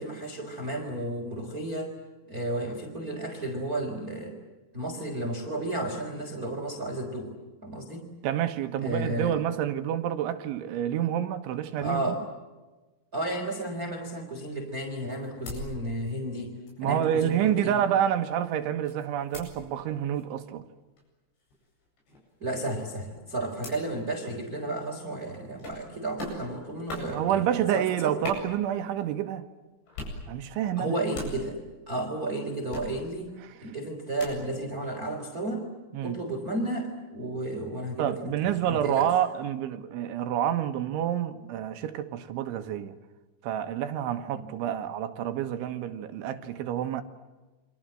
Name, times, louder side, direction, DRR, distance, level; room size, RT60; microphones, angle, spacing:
voice 1, 0.0-1.9 2.3-4.3 4.7-7.3 7.6-8.1 8.8-9.4 11.8-12.2 13.1-16.5 16.8-17.8 22.4-28.2 30.8-31.6 31.9-33.4 33.6-35.7 36.0-39.1 44.3-44.5, right 1 dB, 20° right, 3.5 m, -33 dB
voice 2, 8.2-12.1 16.8-20.6 27.1-29.5 30.3-31.0 35.9-36.2 38.0-43.0 43.4-47.0, right 10 dB, 75° right, 3.6 m, -28 dB
sound 1, 14.8-16.4 16.7-19.7 20.1-20.5 20.8-21.0 21.4-25.0 25.6-25.9 26.2-26.5 26.8-27.2 28.2-29.2 29.9-30.2 30.6-32.0 32.7-33.2 34.2-34.5, left 1 dB, 65° left, 10.5 m, -42 dB
29.5 x 25.5 x 7.6 m
omnidirectional pair, 5.7 m